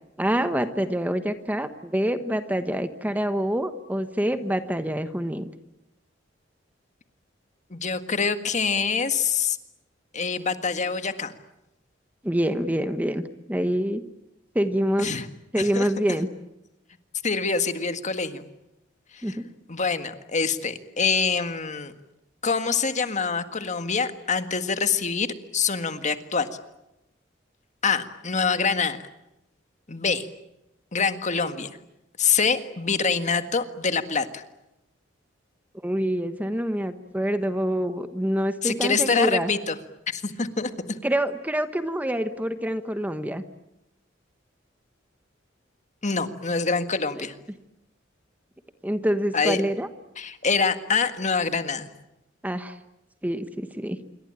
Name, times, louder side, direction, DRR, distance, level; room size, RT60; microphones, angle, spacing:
voice 1, 0.2-5.5 12.2-13.2 13.5-14.0 14.5-15.1 15.5-16.3 19.2-19.4 35.8-39.5 41.0-43.4 47.2-47.3 48.8-49.9 52.4-52.8 53.2-54.0, equal, 10° right, 10 dB, 1.2 m, -26 dB
voice 2, 7.7-9.6 10.1-11.3 15.0-15.3 15.6-15.9 17.2-18.5 19.1-19.4 19.7-21.9 22.4-25.3 25.5-26.5 27.8-29.0 29.9-30.3 30.9-31.8 32.2-34.4 38.6-39.8 40.1-41.0 46.0-47.4 49.3-49.6 50.2-51.9, left 5 dB, 40° left, 9 dB, 1.8 m, -25 dB
27.5 x 23.5 x 8.9 m, 0.88 s
head